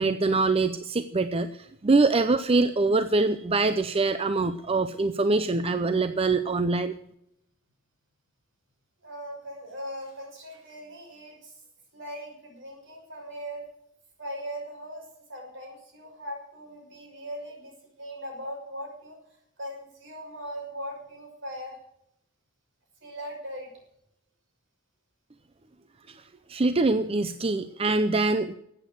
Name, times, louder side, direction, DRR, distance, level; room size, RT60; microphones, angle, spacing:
voice 1, 0.0-7.0 26.5-28.5, right 3 dB, 30° right, 11 dB, 0.6 m, -24 dB
voice 2, 9.0-11.6 11.9-13.6 14.2-19.2 19.6-21.8 23.0-23.7, equal, 65° right, 1 dB, 6.1 m, -39 dB
14.0 x 8.8 x 8.0 m, 0.77 s
head